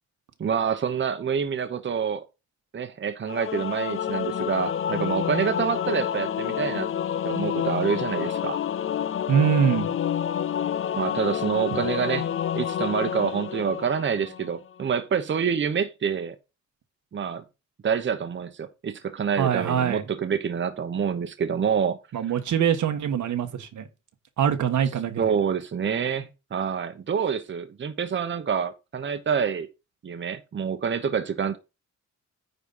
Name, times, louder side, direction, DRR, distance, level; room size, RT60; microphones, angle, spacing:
voice 1, 0.4-2.2 2.7-6.9 7.2-8.6 10.9-12.3 12.5-16.4 17.1-17.4 17.8-22.0 25.2-29.7 30.0-31.6, right 7 dB, 40° right, 1.0 m, -27 dB
Singing / Musical instrument, 3.3-14.5, left 9 dB, 45° left, 0.5 m, -28 dB
voice 2, 9.3-9.9 11.7-11.8 19.4-20.0 22.1-23.9 24.4-25.3, right 8 dB, 85° right, 1.4 m, -24 dB
9.7 x 4.0 x 5.5 m
wide cardioid pair, 145°, 29 cm